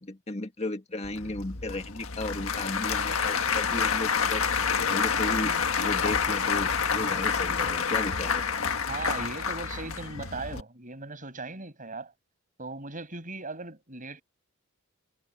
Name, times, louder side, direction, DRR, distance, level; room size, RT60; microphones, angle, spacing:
voice 1, 0.0-4.4 4.9-8.6, left 2 dB, 30° left, 1.5 m, -35 dB
Applause / Crowd, 1.0-10.6, left 6 dB, 75° left, 1.6 m, -28 dB
voice 2, 8.9-12.1 12.6-14.2, right 3 dB, 40° right, 7.2 m, -38 dB
head